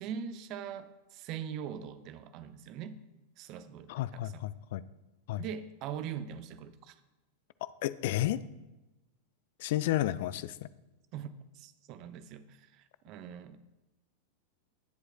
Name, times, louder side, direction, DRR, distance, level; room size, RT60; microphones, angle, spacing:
voice 1, 0.0-3.0 3.4-4.4 5.4-6.9 11.1-11.3 11.5-13.6, right 8 dB, 40° right, 13 dB, 0.6 m, -42 dB
voice 2, 3.9-4.8 5.3-5.4 7.6-8.4 9.6-10.7, left 14 dB, 50° left, 17 dB, 0.4 m, -32 dB
18.5 x 7.9 x 2.3 m, 1.0 s
figure-of-eight pair, 90°, 0 cm